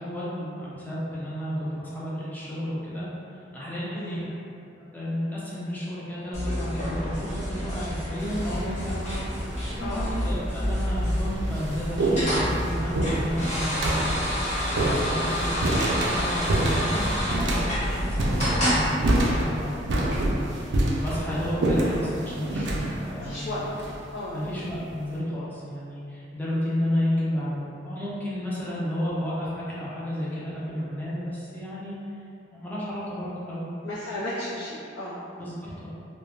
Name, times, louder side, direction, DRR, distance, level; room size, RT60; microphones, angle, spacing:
voice 1, 0.0-4.3 4.9-9.3 9.7-14.2 14.8-23.5 24.3-32.0 32.5-33.7 35.4-35.9, equal, 10° left, -9 dB, 0.5 m, -32 dB
sound 1, 6.3-18.9, equal, 35° left, 0.9 m, -28 dB
sound 2, 8.2-8.6 9.6-9.7 10.5-10.6 11.0-24.5, right 1 dB, 65° right, 0.4 m, -27 dB
voice 2, 15.1-15.4 23.2-23.6 24.1-24.3 28.6-28.7 33.8-35.5, left 1 dB, 80° left, -9 dB, 0.4 m, -35 dB
2.4 x 2.1 x 3.1 m, 2.6 s
head